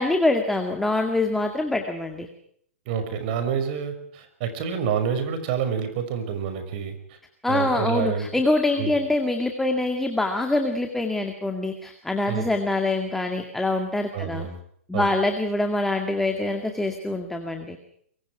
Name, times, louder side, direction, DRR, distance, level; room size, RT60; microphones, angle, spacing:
voice 1, 0.0-2.3 7.4-14.5 14.9-17.8, left 2 dB, 5° left, 4 dB, 2.1 m, -25 dB
voice 2, 2.9-7.2 7.5-8.3 8.8-8.9 12.3-12.5 14.1-14.6 14.9-15.1, right 7 dB, 45° right, 8 dB, 5.8 m, -28 dB
25.5 x 23.0 x 4.8 m, 0.65 s
hypercardioid pair, 145°, 7 cm